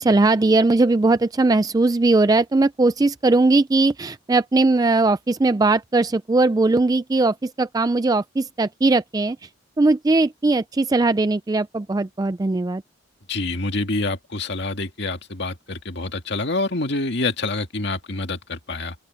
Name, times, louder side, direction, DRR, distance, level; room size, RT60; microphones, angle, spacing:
voice 1, 0.0-9.5 9.8-12.8, right 3 dB, 20° right, 0.3 m, -19 dB
voice 2, 13.3-18.9, left 2 dB, 60° left, 2.2 m, -27 dB
open air
head